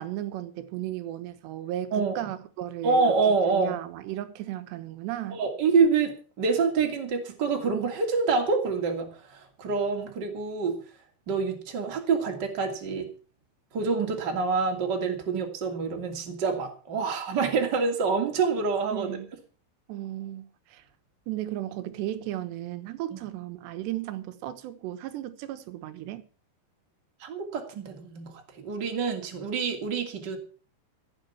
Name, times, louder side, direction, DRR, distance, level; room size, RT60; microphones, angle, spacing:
voice 1, 0.0-3.0 3.5-5.4 18.9-19.3 19.9-20.8 21.3-26.3, right 13 dB, 80° right, 3.3 m, -35 dB
voice 2, 1.9-2.2 2.8-3.8 5.3-10.8 11.3-13.1 13.7-19.2 23.1-23.2 27.2-30.4, right 4 dB, 30° right, 2.6 m, -26 dB
15.0 x 8.3 x 7.1 m
omnidirectional pair, 4.9 m